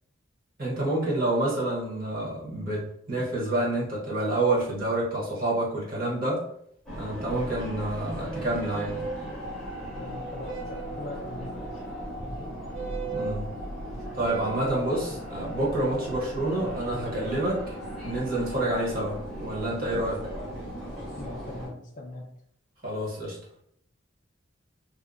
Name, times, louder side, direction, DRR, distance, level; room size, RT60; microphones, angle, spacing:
voice 1, 0.6-6.4 7.0-9.0 13.1-13.5 14.1-17.6 18.0-20.3 22.8-23.4, right 1 dB, 45° right, -6 dB, 1.0 m, -28 dB
sound 1, 6.9-21.7, equal, ahead, 0.6 m, -37 dB
sound 2, 8.3-9.2 10.4-11.0 12.7-13.4 14.2-14.9, right 6 dB, 70° right, 0.5 m, -36 dB
voice 2, 9.9-11.8 21.1-22.3, left 1 dB, 40° left, 1 dB, 0.3 m, -41 dB
2.7 x 2.0 x 2.4 m, 0.67 s
head